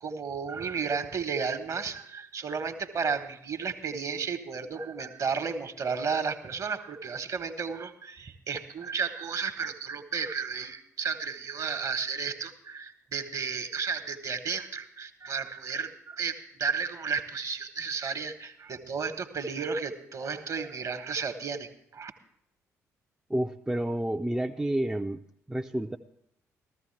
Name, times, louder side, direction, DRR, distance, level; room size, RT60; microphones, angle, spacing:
voice 1, 0.0-22.1, right 5 dB, 45° right, 9 dB, 1.2 m, -33 dB
voice 2, 23.3-25.2 25.5-26.0, right 1 dB, 10° right, 5 dB, 0.5 m, -29 dB
14.5 x 14.0 x 3.3 m, 0.75 s
figure-of-eight pair, 40°, 8 cm